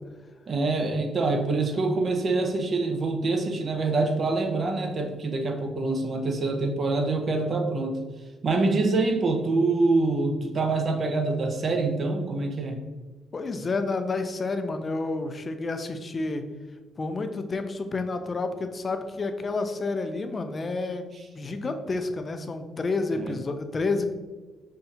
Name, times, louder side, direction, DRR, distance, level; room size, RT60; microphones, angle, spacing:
voice 1, 0.5-8.0 8.4-12.8 23.2-23.3, right 3 dB, 45° right, 4 dB, 0.6 m, -25 dB
voice 2, 13.3-16.4 17.0-24.3, left 3 dB, 35° left, 7 dB, 0.4 m, -30 dB
5.6 x 2.4 x 2.7 m, 1.3 s
cardioid pair, 90°, 0 cm